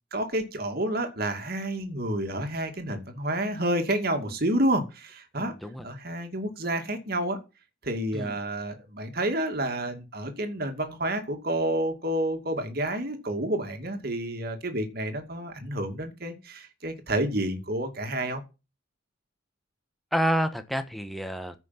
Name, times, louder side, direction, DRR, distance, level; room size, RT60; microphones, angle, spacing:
voice 1, 0.1-5.5 5.8-7.4 7.8-18.4, right 1 dB, 50° right, 2.4 m, -29 dB
voice 2, 5.4-5.9 8.1-8.3 20.1-21.6, equal, ahead, 1.2 m, -29 dB
15.0 x 6.2 x 5.9 m
head